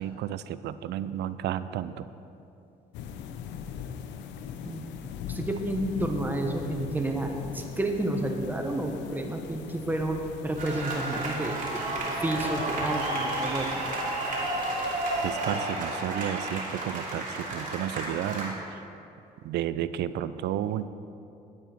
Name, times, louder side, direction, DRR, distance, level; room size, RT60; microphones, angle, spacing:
voice 1, 0.0-2.1 15.2-18.8 19.4-20.9, right 11 dB, 75° right, 14 dB, 0.4 m, -32 dB
sound 1, 2.9-15.4, left 8 dB, 85° left, 0.6 m, -41 dB
voice 2, 4.6-5.0 5.3-13.8, right 1 dB, 10° right, 3 dB, 1.2 m, -31 dB
sound 2, 10.6-18.5, right 2 dB, 45° right, 2.8 m, -31 dB
10.5 x 8.9 x 4.4 m, 2.7 s
supercardioid pair, 80°, 18 cm